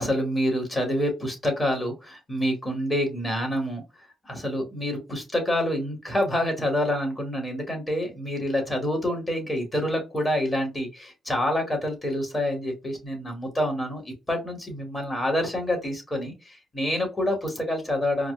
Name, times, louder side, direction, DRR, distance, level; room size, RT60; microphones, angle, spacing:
voice 1, 0.0-3.8 4.2-18.3, left 1 dB, 20° left, 2 dB, 2.2 m, -27 dB
4.7 x 2.5 x 2.4 m, 0.26 s
cardioid pair, 100°, 0 cm